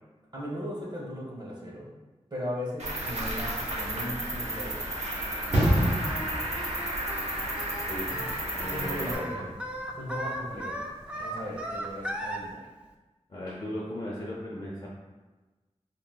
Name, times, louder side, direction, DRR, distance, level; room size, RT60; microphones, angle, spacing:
voice 1, 0.3-1.9 2.3-4.8 5.5-5.9 8.1-8.3 8.7-9.5 9.9-10.8 11.2-12.7, equal, 35° right, -4 dB, 0.7 m, -37 dB
Cricket, 2.8-9.2, right 1 dB, 70° right, 0.6 m, -33 dB
Singing, 5.5-12.4, right 1 dB, 10° right, 0.3 m, -37 dB
sound 1, 5.5-12.0 12.3-12.5, equal, 85° right, 1.1 m, -31 dB
voice 2, 8.6-9.5 11.2-11.3 13.3-14.9, equal, 45° left, -5 dB, 0.5 m, -36 dB
3.7 x 2.1 x 2.2 m, 1.2 s
wide cardioid pair, 75°, 12 cm